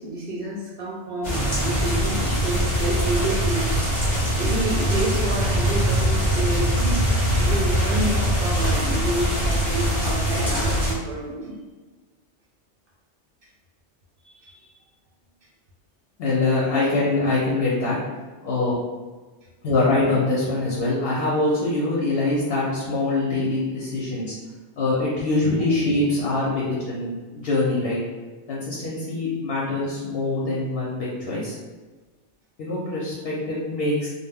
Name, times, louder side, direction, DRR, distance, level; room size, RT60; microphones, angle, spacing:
voice 1, 0.0-7.1 7.4-11.6 14.2-14.7 25.6-25.7, right 1 dB, 60° right, -3 dB, 0.6 m, -29 dB
sound 1, 1.2-10.9, equal, 30° left, 0.8 m, -22 dB
voice 2, 16.2-18.0 18.4-18.7 19.6-24.4 24.8-28.0 28.5-31.5 32.6-34.1, left 2 dB, 65° left, -6 dB, 0.7 m, -24 dB
2.2 x 2.0 x 3.4 m, 1.3 s
omnidirectional pair, 1.2 m